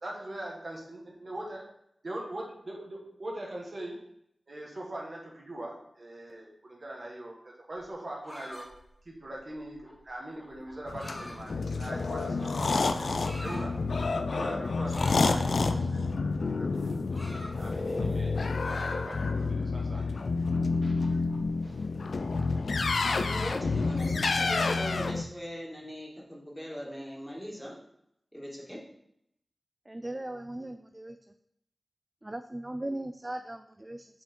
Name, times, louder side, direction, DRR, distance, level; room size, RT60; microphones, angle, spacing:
voice 1, 0.0-1.7 2.0-4.0 4.5-8.7 9.1-13.8 14.3-16.1 16.5-16.9 17.6-20.0 20.8-21.1 21.6-21.8, right 1 dB, 55° right, -2 dB, 1.7 m, -41 dB
sound 1, 7.8-12.2 12.9-13.6 14.9-15.6 16.8-18.2 18.5-19.4 19.8-21.5, left 1 dB, 20° left, 2.4 m, -47 dB
sound 2, 10.9-25.2, left 3 dB, 80° left, 0.4 m, -29 dB
voice 2, 23.2-27.8 28.3-28.8, equal, ahead, -3 dB, 2.2 m, -40 dB
voice 3, 29.9-31.2 32.2-34.1, right 1 dB, 25° right, 8 dB, 0.4 m, -38 dB
5.8 x 4.8 x 4.5 m, 0.75 s
cardioid pair, 45°, 0 cm